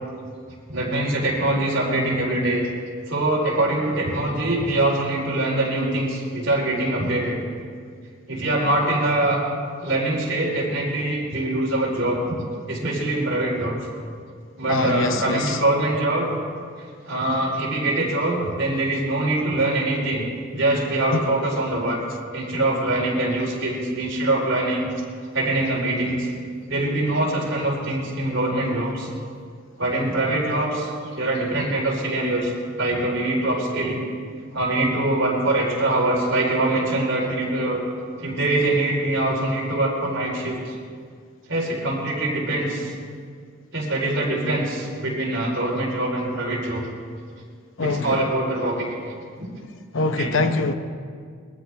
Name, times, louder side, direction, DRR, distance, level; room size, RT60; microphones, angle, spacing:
voice 1, 0.7-2.7 3.1-7.4 8.3-9.4 9.8-12.2 12.7-13.8 14.6-16.3 17.1-20.3 20.5-22.0 22.3-24.9 25.3-26.3 26.7-29.1 29.8-30.9 31.2-32.5 32.8-34.0 34.5-37.8 38.2-40.8 41.5-42.9 43.7-46.9 47.8-48.9 50.2-50.4, right 2 dB, 60° right, -3 dB, 4.2 m, -23 dB
voice 2, 14.7-15.6 21.1-21.2 47.8-48.2 49.9-50.7, left 3 dB, 65° left, 8 dB, 0.8 m, -23 dB
22.0 x 13.5 x 3.5 m, 2.1 s
head